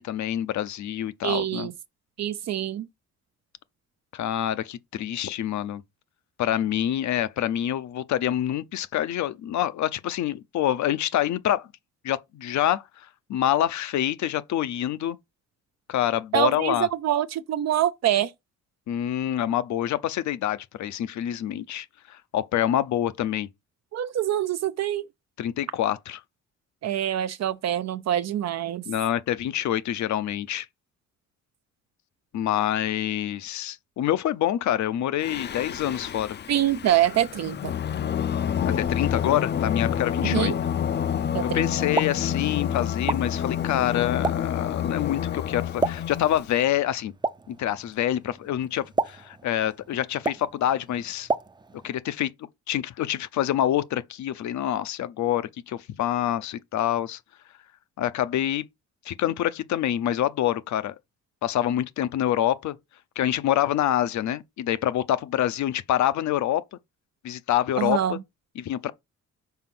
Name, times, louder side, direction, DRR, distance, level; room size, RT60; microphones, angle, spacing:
voice 1, 0.0-1.7 4.1-5.8 6.4-11.7 12.0-12.8 13.3-15.2 15.9-16.9 18.9-23.5 25.4-26.2 28.9-30.7 32.3-36.4 38.7-40.5 41.5-47.1 47.5-51.3 51.8-52.3 52.7-57.2 58.0-58.6 59.1-60.9 61.4-62.8 63.2-66.6 67.2-68.2 68.6-68.9, left 11 dB, 70° left, 0.7 m, -26 dB
voice 2, 1.2-1.7 2.2-2.9 16.3-18.3 23.9-25.1 26.8-28.8 36.5-37.7 40.2-40.6 41.3-41.7 67.8-68.2, right 11 dB, 60° right, 0.6 m, -25 dB
Singing, 35.2-46.5, left 9 dB, 35° left, 0.5 m, -28 dB
Explosion, 41.7-52.0, right 3 dB, 15° right, 0.5 m, -34 dB
5.7 x 4.4 x 6.0 m
cardioid pair, 90°, 30 cm